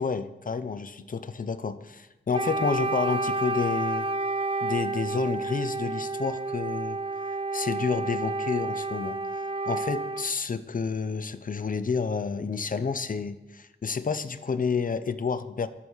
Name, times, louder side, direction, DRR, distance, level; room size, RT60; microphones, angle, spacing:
voice 1, 0.0-4.1 4.6-7.0 7.5-9.2 9.7-15.7, left 5 dB, 45° left, 13 dB, 0.5 m, -29 dB
Wind instrument woodwind instrument, 2.3-10.3, right 3 dB, 30° right, 0.5 m, -30 dB
13.5 x 4.6 x 3.6 m, 1.1 s
cardioid pair, 45°, 20 cm